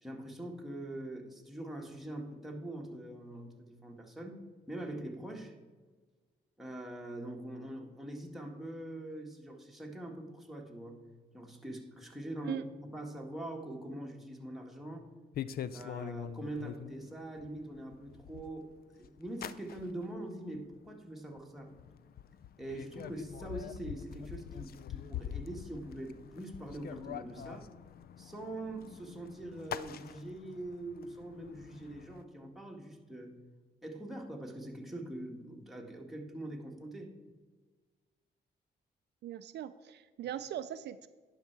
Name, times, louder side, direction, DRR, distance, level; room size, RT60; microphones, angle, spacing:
voice 1, 0.0-4.4 4.7-5.6 6.6-11.0 11.3-15.1 15.7-18.7 19.0-21.7 22.6-27.7 28.2-33.4 33.8-37.1, right 1 dB, ahead, 1 dB, 1.7 m, -43 dB
sound 1, 15.3-16.9 17.4-18.7 19.0-20.1 20.5-20.9 21.3-21.4 21.7-32.2, left 9 dB, 55° left, 0.4 m, -44 dB
voice 2, 39.2-41.1, right 11 dB, 70° right, 12 dB, 0.4 m, -40 dB
10.5 x 5.6 x 4.6 m, 1.4 s
cardioid pair, 65°, 18 cm